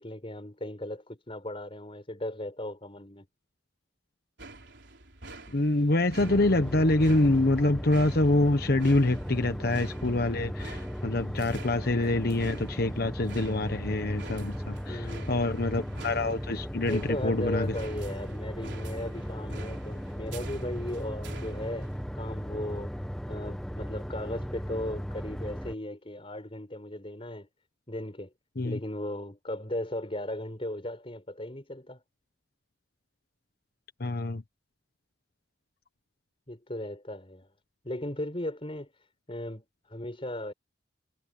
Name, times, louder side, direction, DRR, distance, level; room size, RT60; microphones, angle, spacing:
voice 1, 0.0-3.2 14.9-15.6 16.8-22.9 23.3-27.5 27.9-28.3 28.6-32.0 36.5-37.5 37.8-38.9 39.3-40.5, left 1 dB, 30° left, 4.9 m, -37 dB
sound 1, 4.4-22.1, right 2 dB, 75° right, 3.8 m, -47 dB
voice 2, 5.5-17.7 28.6-28.8 34.0-34.4, left 2 dB, 55° left, 1.1 m, -26 dB
sound 2, 6.2-25.7, equal, 5° left, 1.5 m, -37 dB
head